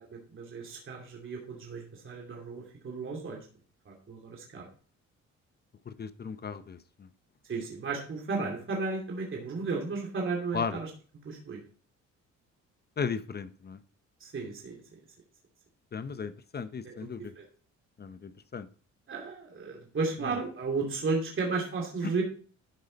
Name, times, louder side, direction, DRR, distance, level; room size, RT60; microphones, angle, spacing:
voice 1, 0.3-3.5 3.9-4.7 7.5-10.9 11.2-11.6 14.2-14.8 16.8-16.9 17.4-17.5 19.1-22.2, right 4 dB, 40° right, -1 dB, 2.7 m, -34 dB
voice 2, 5.9-7.1 10.5-10.8 13.0-13.8 15.9-17.3 18.0-18.7, left 6 dB, 35° left, 14 dB, 0.7 m, -36 dB
12.0 x 5.5 x 4.1 m, 0.41 s
cardioid pair, 90°, 30 cm